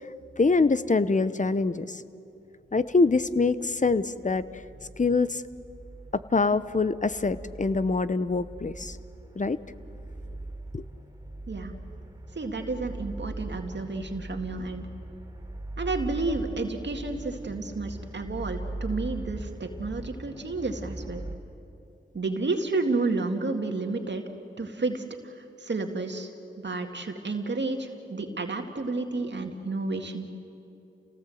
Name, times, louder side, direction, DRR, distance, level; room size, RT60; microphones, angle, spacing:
voice 1, 0.4-2.0 2.7-4.5 5.0-5.4 6.3-9.0 9.4-9.6 10.7-10.8, left 3 dB, 35° left, 14 dB, 0.9 m, -24 dB
sound 1, 2.8-21.4, right 2 dB, 15° right, 3.7 m, -40 dB
voice 2, 12.4-14.9 15.8-21.2 22.1-24.2 24.6-26.3 26.6-30.3, right 3 dB, 60° right, 4 dB, 2.1 m, -31 dB
28.5 x 18.0 x 7.8 m, 2.8 s
cardioid pair, 45°, 21 cm